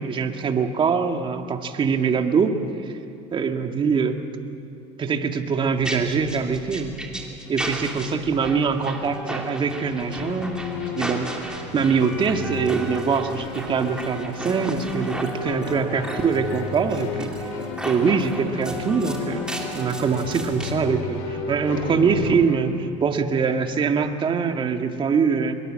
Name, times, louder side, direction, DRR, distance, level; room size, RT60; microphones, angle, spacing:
voice 1, 0.0-2.6 2.8-2.9 3.3-4.2 5.0-6.9 7.5-10.5 10.9-11.4 11.7-17.5 17.8-25.6, right 5 dB, 30° right, 5 dB, 1.9 m, -23 dB
sound 1, 5.8-20.7, right 1 dB, 5° right, 3.0 m, -35 dB
sound 2, 9.9-22.4, left 4 dB, 80° left, 5.8 m, -33 dB
23.5 x 22.0 x 7.6 m, 2.8 s
supercardioid pair, 115°, 16 cm